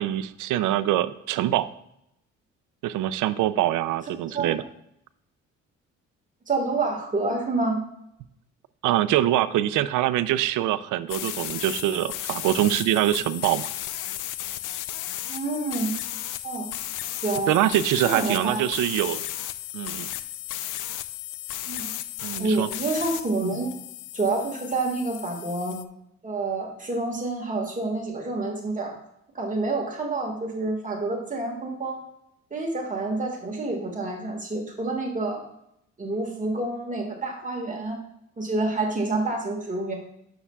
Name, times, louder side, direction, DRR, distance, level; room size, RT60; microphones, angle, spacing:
voice 1, 0.0-1.7 2.8-4.6 8.8-13.7 17.5-19.2 19.7-20.1 22.2-22.7, right 13 dB, 85° right, 14 dB, 0.5 m, -24 dB
voice 2, 6.5-7.8 15.3-15.9 16.4-16.7 17.2-17.5 18.0-18.6 21.7-21.9 22.4-23.7 24.1-25.8 26.2-28.9 29.3-32.0 32.5-35.4 36.0-38.0 38.4-39.9, right 3 dB, 25° right, 1 dB, 1.8 m, -28 dB
sound 1, 11.1-25.8, left 13 dB, 90° left, 0.5 m, -34 dB
9.5 x 7.0 x 2.3 m, 0.77 s
cardioid pair, 90°, 30 cm